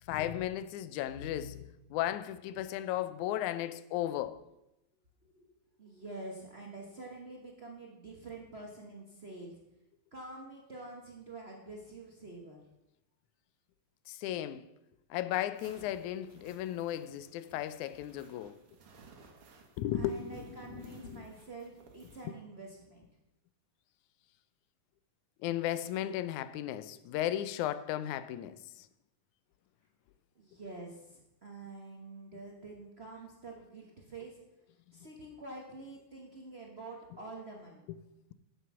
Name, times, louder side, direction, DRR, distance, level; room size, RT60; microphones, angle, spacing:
voice 1, 0.1-4.4 14.1-14.7 15.1-18.6 19.8-21.3 22.2-22.3 25.4-28.9 37.9-38.0, left 12 dB, 85° left, 2.0 m, -35 dB
voice 2, 5.8-9.6 10.1-12.6 19.9-23.1 30.3-34.4 34.9-37.9, right 2 dB, 80° right, 0.5 m, -47 dB
sound 1, 15.5-22.3, right 4 dB, 55° right, 2.2 m, -58 dB
9.8 x 7.8 x 6.1 m
omnidirectional pair, 3.4 m